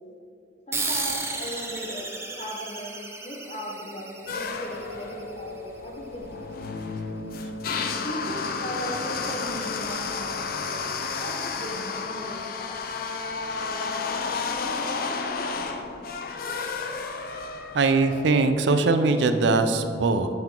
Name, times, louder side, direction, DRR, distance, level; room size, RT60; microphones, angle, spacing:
voice 1, 0.7-2.1 2.4-6.5 8.0-12.8, equal, 35° left, 0 dB, 1.0 m, -37 dB
sound 1, 0.7-5.7, right 3 dB, 15° right, 0.5 m, -34 dB
Wind instrument woodwind instrument, 4.1-10.9, left 3 dB, 90° left, 0.8 m, -43 dB
sound 2, 4.3-18.3, left 4 dB, 50° left, 0.4 m, -32 dB
voice 2, 17.7-20.3, right 3 dB, 75° right, 9 dB, 0.4 m, -21 dB
7.1 x 5.6 x 3.8 m, 2.6 s
head